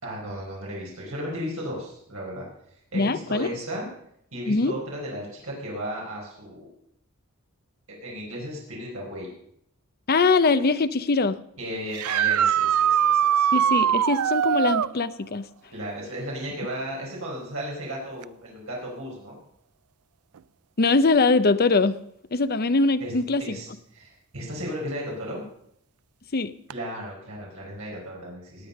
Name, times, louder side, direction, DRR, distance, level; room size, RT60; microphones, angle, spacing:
voice 1, 0.0-2.5 2.9-3.9 4.3-6.7 7.9-9.3 11.6-13.5 15.7-19.4 23.0-23.1 23.4-25.4 26.7-28.7, equal, 70° right, -3 dB, 4.8 m, -35 dB
voice 2, 2.9-3.5 4.5-4.8 10.1-11.4 13.5-15.5 20.8-22.0 22.3-23.6 26.3-26.5, left 3 dB, 45° left, 13 dB, 0.7 m, -22 dB
sound 1, 11.9-14.9 18.2-18.3 20.4-20.5 26.7-26.8, right 9 dB, 85° right, 0.4 m, -21 dB
18.5 x 8.4 x 5.3 m, 0.71 s
head